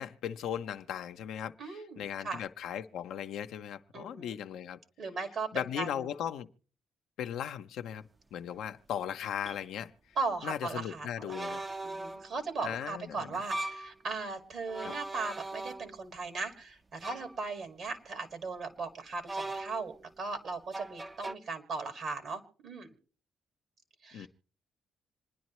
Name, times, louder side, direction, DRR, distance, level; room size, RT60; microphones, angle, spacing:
voice 1, 0.0-4.8 5.5-6.5 7.2-9.9 10.4-11.6 12.6-13.4 14.8-14.9 24.1-24.3, left 9 dB, 80° left, 0.6 m, -37 dB
voice 2, 1.6-2.4 3.9-4.4 5.0-6.1 10.2-22.9 24.0-24.3, right 4 dB, 65° right, 2.1 m, -38 dB
sound 1, 8.5-8.6 9.4-9.6 11.3-12.3 13.3-13.9 14.7-16.1 17.0-17.4 19.3-20.0 20.7-21.3, right 2 dB, 25° right, 0.6 m, -39 dB
26.5 x 10.5 x 3.1 m
supercardioid pair, 55°, 0 cm